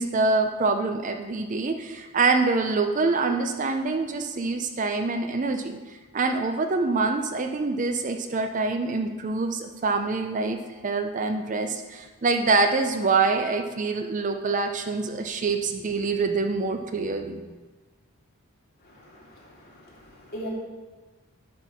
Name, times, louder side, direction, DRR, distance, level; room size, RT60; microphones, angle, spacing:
voice 1, 0.0-5.8 6.1-10.6 10.8-17.4, right 3 dB, 35° right, 6 dB, 0.5 m, -25 dB
voice 2, 18.8-20.5, equal, 45° left, -5 dB, 2.7 m, -41 dB
11.0 x 4.4 x 5.8 m, 1.3 s
head